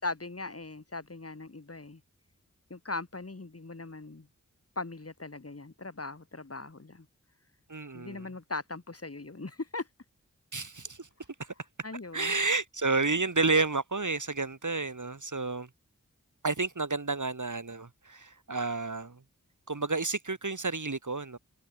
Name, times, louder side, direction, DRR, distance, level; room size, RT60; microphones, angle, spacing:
voice 1, 0.0-2.0 2.7-4.3 4.8-7.1 7.9-9.9 11.8-12.3, left 3 dB, 45° left, 3.7 m, -39 dB
voice 2, 7.7-8.3 10.5-11.1 12.1-15.7 16.4-19.2 19.7-21.4, right 3 dB, 65° right, 5.9 m, -30 dB
wide cardioid pair, 55°, 33 cm